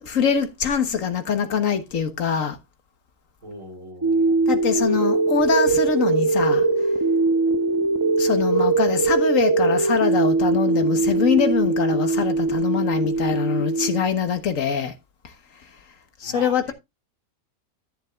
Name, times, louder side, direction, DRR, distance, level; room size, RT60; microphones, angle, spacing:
voice 1, 0.0-2.6 4.5-6.6 8.2-14.9 15.2-15.3 16.2-16.7, left 6 dB, 60° left, 1.6 m, -23 dB
voice 2, 3.4-4.5 16.2-16.7, right 2 dB, 65° right, 4.6 m, -40 dB
sound 1, 4.0-14.0, right 3 dB, 20° right, 0.7 m, -21 dB
13.5 x 7.4 x 2.4 m
omnidirectional pair, 1.5 m